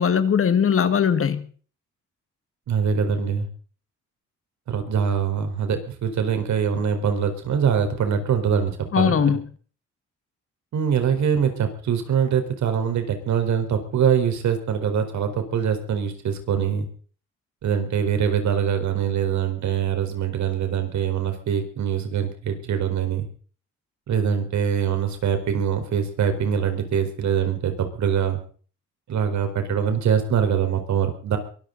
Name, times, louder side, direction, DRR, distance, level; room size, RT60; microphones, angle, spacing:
voice 1, 0.0-1.5 8.9-9.4, left 7 dB, 45° left, 12 dB, 1.8 m, -20 dB
voice 2, 2.7-3.5 4.7-9.1 10.7-16.9 17.6-23.3 24.1-28.4 29.1-31.4, right 7 dB, 70° right, 7 dB, 4.5 m, -23 dB
23.0 x 14.5 x 4.1 m, 0.42 s
cardioid pair, 90°, 30 cm